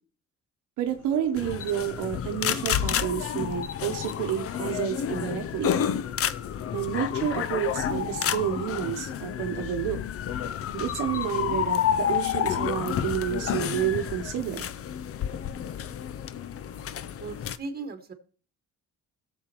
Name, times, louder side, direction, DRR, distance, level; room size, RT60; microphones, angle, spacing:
sound 1, 0.8-7.9, left 7 dB, 85° left, 1.1 m, -49 dB
voice 1, 0.8-5.7 6.7-10.0 10.7-14.7, right 10 dB, 90° right, 5 dB, 0.9 m, -30 dB
sound 2, 1.4-17.6, left 9 dB, 50° left, 0.6 m, -30 dB
voice 2, 17.2-18.1, right 3 dB, 30° right, 6 dB, 1.7 m, -37 dB
16.5 x 7.2 x 3.0 m, 0.42 s
cardioid pair, 90°, 30 cm